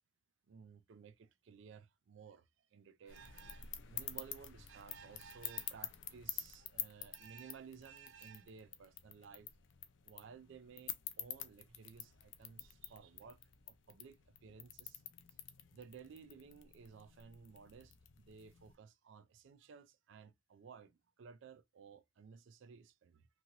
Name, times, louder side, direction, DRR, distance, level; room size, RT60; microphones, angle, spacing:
voice 1, 0.5-9.5 10.0-13.4 13.7-15.0 15.7-23.3, right 6 dB, 65° right, 0.3 m, -56 dB
sound 1, 3.1-18.8, left 11 dB, 65° left, 0.4 m, -49 dB
3.0 x 2.8 x 2.5 m
head